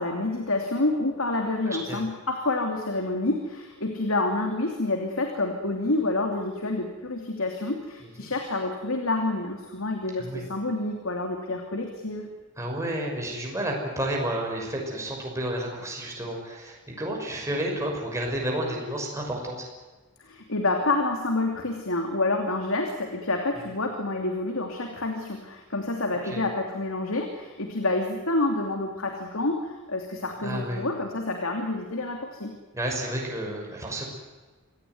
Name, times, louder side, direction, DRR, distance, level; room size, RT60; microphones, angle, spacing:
voice 1, 0.0-12.3 20.2-32.6, left 2 dB, 70° left, 3 dB, 2.9 m, -28 dB
voice 2, 1.6-2.0 8.2-8.3 10.2-10.4 12.6-19.7 26.2-26.4 30.4-30.8 32.7-34.0, right 1 dB, 15° right, -1 dB, 6.1 m, -31 dB
26.5 x 18.0 x 9.5 m, 1.3 s
head